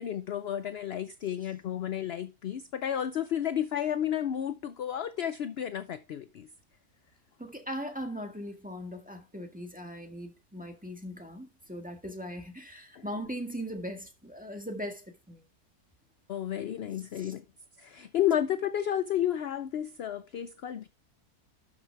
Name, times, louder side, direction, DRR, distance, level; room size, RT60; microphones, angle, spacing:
voice 1, 0.0-6.5 13.0-13.1 16.3-17.4 17.8-20.9, left 10 dB, 60° left, 0.6 m, -32 dB
voice 2, 7.4-15.4 17.1-17.3, equal, 5° right, 1.7 m, -39 dB
12.5 x 6.0 x 4.7 m
omnidirectional pair, 1.6 m